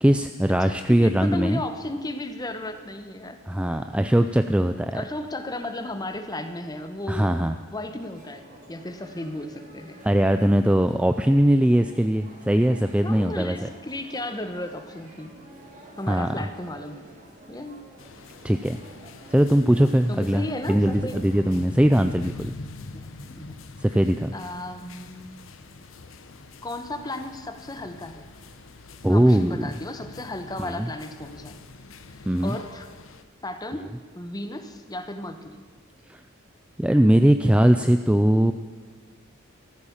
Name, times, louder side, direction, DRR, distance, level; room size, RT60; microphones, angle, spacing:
voice 1, 0.0-1.6 3.5-5.0 7.1-7.6 10.0-13.6 16.1-16.3 18.4-18.8 19.3-22.5 23.8-24.3 29.0-29.6 30.6-30.9 32.3-32.6 36.1-36.2 36.8-38.5, right 1 dB, 5° right, 8 dB, 0.4 m, -20 dB
voice 2, 0.6-3.4 4.9-7.3 7.7-10.0 13.0-15.4 16.0-17.8 20.1-21.2 22.9-23.6 23.9-24.0 24.3-25.4 26.6-28.3 29.1-31.6 32.1-32.9 33.4-33.9 34.1-35.6, left 1 dB, 20° left, 8 dB, 1.1 m, -35 dB
sound 1, 8.0-21.6, equal, 40° right, 3.3 m, -49 dB
sound 2, 18.0-33.2, left 3 dB, 80° left, 0.9 m, -43 dB
14.0 x 14.0 x 7.2 m, 1.4 s
head